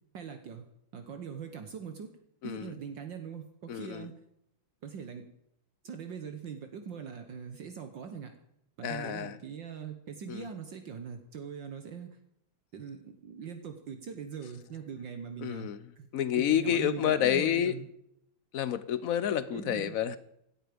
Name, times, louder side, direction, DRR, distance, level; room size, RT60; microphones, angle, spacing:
voice 1, 0.1-0.7 0.9-2.1 2.4-4.1 4.8-5.3 5.8-8.3 8.8-12.2 12.7-15.7 16.0-16.1 16.4-17.9 19.5-20.0, right 7 dB, 65° right, 7 dB, 1.8 m, -41 dB
voice 2, 2.4-2.7 3.7-4.1 8.8-9.4 10.3-10.5 15.4-15.8 16.1-17.8 18.5-20.2, left 10 dB, 75° left, 14 dB, 0.8 m, -29 dB
17.5 x 12.0 x 5.2 m, 0.74 s
omnidirectional pair, 2.3 m